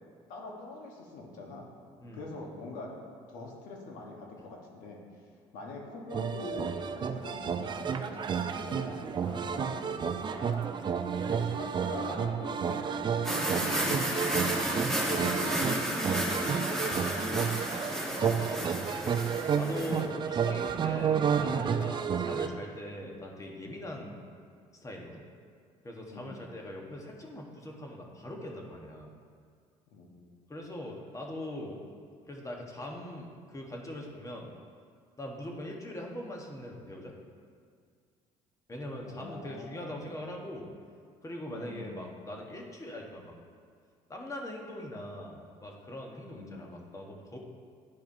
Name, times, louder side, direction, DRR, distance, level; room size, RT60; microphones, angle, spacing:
voice 1, 0.3-1.7 2.1-2.9 3.3-5.0 5.5-10.6 11.3-14.6 15.0-17.6 18.2-18.7 26.1-26.4 29.9-30.4 39.0-40.0 41.5-42.1 46.3-46.7, left 2 dB, 80° left, 0 dB, 1.2 m, -44 dB
sound 1, 6.1-22.5, right 7 dB, 35° right, 0.4 m, -31 dB
sound 2, 13.2-20.0, equal, 5° left, 1.3 m, -32 dB
voice 2, 18.1-18.6 19.5-24.2 24.7-25.2 25.8-29.2 30.5-31.8 32.3-34.5 35.2-37.1 38.7-40.7 41.2-43.3 44.1-47.4, left 1 dB, 25° left, 0 dB, 1.2 m, -41 dB
10.5 x 4.7 x 2.7 m, 2.1 s
supercardioid pair, 80°, 14 cm